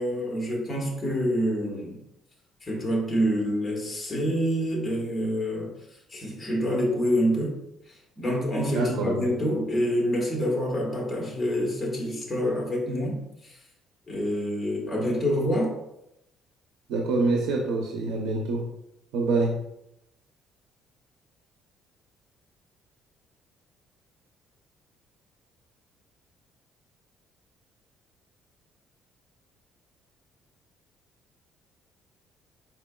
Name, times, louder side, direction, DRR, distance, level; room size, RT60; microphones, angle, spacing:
voice 1, 0.0-2.0 2.6-5.7 6.1-7.6 7.9-13.2 13.4-13.5 14.1-15.7, equal, 20° left, -3 dB, 1.3 m, -27 dB
voice 2, 8.7-9.2 16.9-18.7 19.1-19.6, right 3 dB, 90° right, 0 dB, 0.6 m, -25 dB
4.6 x 4.3 x 2.2 m, 0.84 s
cardioid pair, 135°, 0 cm